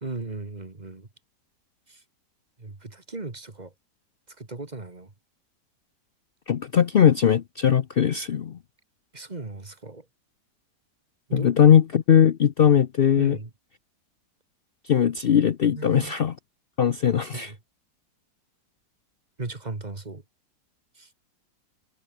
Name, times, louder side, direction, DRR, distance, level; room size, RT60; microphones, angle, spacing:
voice 1, 0.0-1.1 1.9-2.0 2.6-3.7 4.3-5.1 9.1-10.1 11.3-11.5 13.2-13.5 15.8-16.1 17.1-17.6 19.4-20.2 21.0-21.1, right 3 dB, 25° right, 2.1 m, -37 dB
voice 2, 6.5-8.6 11.3-13.4 14.8-16.3 16.8-17.5, left 8 dB, 75° left, 0.5 m, -20 dB
omnidirectional pair, 1.9 m